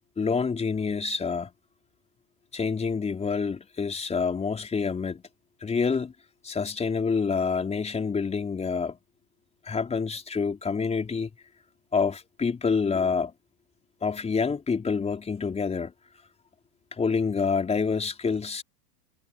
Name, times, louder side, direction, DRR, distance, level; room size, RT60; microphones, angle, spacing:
voice 1, 0.2-1.5 2.5-5.2 5.6-6.1 6.4-9.0 9.6-11.3 11.9-13.3 14.0-15.9 16.9-18.6, left 5 dB, 15° left, 4.6 m, -27 dB
supercardioid pair, 140°, 48 cm